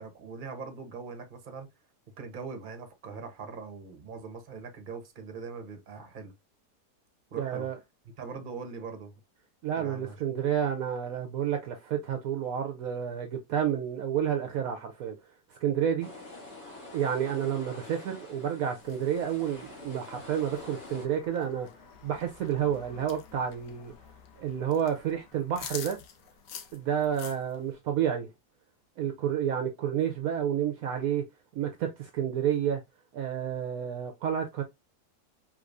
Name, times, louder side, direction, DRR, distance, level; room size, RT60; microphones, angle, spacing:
voice 1, 0.0-1.7 2.2-6.3 7.3-7.7 8.2-9.1 9.8-10.2, right 5 dB, 40° right, 0.9 m, -41 dB
voice 2, 7.4-7.8 9.6-15.2 15.5-16.1 16.9-21.7 22.0-23.9 24.4-26.0 26.7-28.3 29.0-31.2 31.6-32.8 33.1-34.6, right 9 dB, 65° right, 0.9 m, -30 dB
sound 1, 16.0-21.1, left 2 dB, 40° left, 2.9 m, -46 dB
sound 2, 18.8-27.7, left 8 dB, 80° left, 1.3 m, -48 dB
4.8 x 3.5 x 2.6 m
omnidirectional pair, 1.8 m